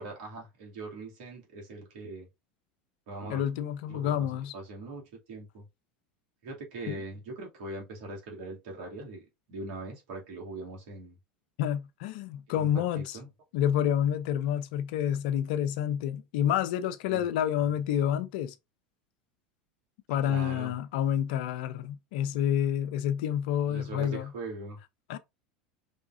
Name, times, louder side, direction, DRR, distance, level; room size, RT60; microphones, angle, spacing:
voice 1, 0.0-2.3 3.1-3.4 3.9-5.6 6.4-9.2 9.5-11.1 12.5-13.3 17.1-17.3 20.2-20.7 23.7-24.8, right 2 dB, 70° right, 2.4 m, -41 dB
voice 2, 3.3-4.5 6.9-7.0 11.6-13.2 13.5-18.5 20.1-24.3 25.1-25.2, left 10 dB, 70° left, 0.6 m, -29 dB
5.3 x 3.5 x 2.5 m
hypercardioid pair, 90°, 5 cm